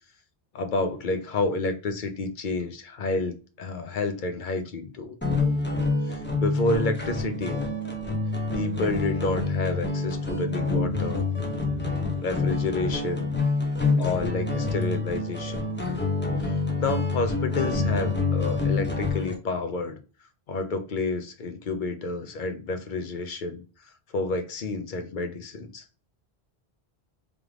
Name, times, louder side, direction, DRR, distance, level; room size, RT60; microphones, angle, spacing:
voice 1, 0.5-5.2 6.1-7.6 8.5-11.3 12.2-13.4 14.0-15.7 16.4-20.0 20.5-23.6 24.1-25.8, left 3 dB, 55° left, 0.8 m, -29 dB
sound 1, 5.2-19.3, left 3 dB, 10° left, 0.7 m, -27 dB
3.5 x 3.3 x 3.5 m
omnidirectional pair, 1.0 m